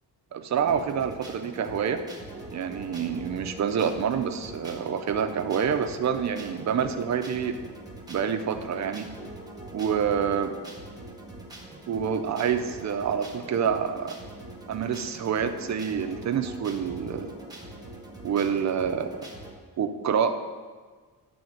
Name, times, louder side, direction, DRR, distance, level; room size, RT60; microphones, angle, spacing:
voice 1, 0.3-2.0 2.5-7.6 8.1-9.1 9.7-10.6 11.9-14.1 14.7-17.3 18.2-19.3 19.8-20.3, right 7 dB, 45° right, 7 dB, 0.5 m, -27 dB
sound 1, 0.6-19.5, right 1 dB, 10° right, 1.0 m, -43 dB
9.0 x 3.5 x 6.4 m, 1.5 s
wide cardioid pair, 155°, 40 cm